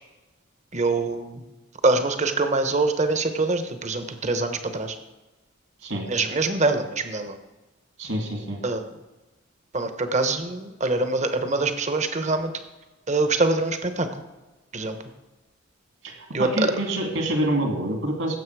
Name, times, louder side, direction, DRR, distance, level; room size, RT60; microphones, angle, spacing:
voice 1, 0.7-1.4 1.8-5.0 6.1-7.4 8.6-8.9 9.7-12.5 13.1-14.1 14.7-15.0 16.3-16.7, right 3 dB, 35° right, 8 dB, 0.9 m, -24 dB
voice 2, 8.0-8.6 16.0-18.4, right 1 dB, 70° right, 2 dB, 2.4 m, -26 dB
16.0 x 7.3 x 4.7 m, 1.1 s
head